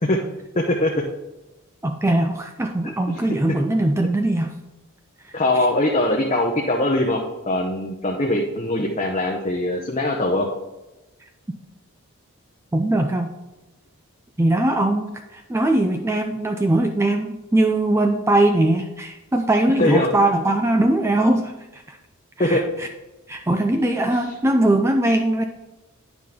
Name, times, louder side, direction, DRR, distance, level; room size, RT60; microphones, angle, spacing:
voice 1, 0.5-0.9 5.3-7.2 7.5-10.5 19.8-20.1 22.4-22.6 24.1-24.2, left 1 dB, 30° left, -1 dB, 0.7 m, -21 dB
voice 2, 1.8-4.5 5.5-5.7 12.7-13.3 14.4-22.0 22.4-22.9 23.3-25.4, right 1 dB, 10° right, 5 dB, 0.3 m, -21 dB
9.3 x 5.9 x 3.6 m, 1.0 s
head